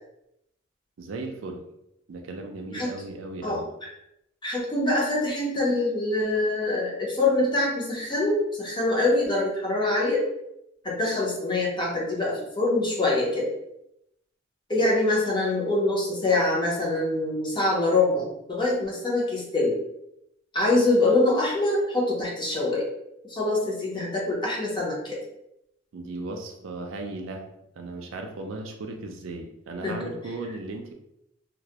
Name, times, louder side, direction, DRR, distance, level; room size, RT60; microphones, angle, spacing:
voice 1, 1.0-1.6 2.1-3.7 25.9-27.5 27.8-30.9, right 2 dB, 70° right, 3 dB, 0.4 m, -36 dB
voice 2, 4.4-10.2 10.8-13.5 14.7-19.8 20.5-22.8 23.2-25.2 29.8-30.1, left 2 dB, 25° left, -3 dB, 0.6 m, -24 dB
2.2 x 2.1 x 2.7 m, 0.82 s
head